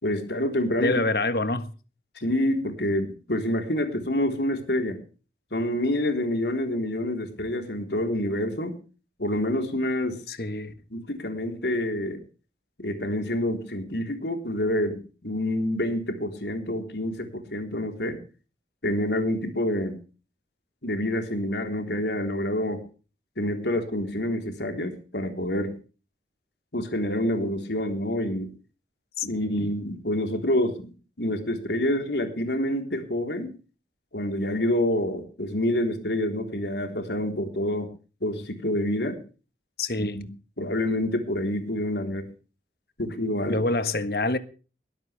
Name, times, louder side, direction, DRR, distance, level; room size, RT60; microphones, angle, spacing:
voice 1, 0.0-1.0 2.2-5.0 5.5-8.8 9.2-10.2 10.9-12.2 12.8-18.2 18.8-20.0 20.8-22.8 23.4-25.7 26.7-28.5 29.2-30.9 31.2-33.5 34.1-37.9 38.2-39.2 40.0-40.3 40.6-42.3 43.0-43.6, left 1 dB, 80° left, 3.8 m, -27 dB
voice 2, 0.8-1.7 10.3-10.7 29.2-29.3 29.6-29.7 39.8-40.2 43.5-44.4, left 2 dB, 60° left, 1.5 m, -26 dB
21.5 x 13.0 x 3.4 m
head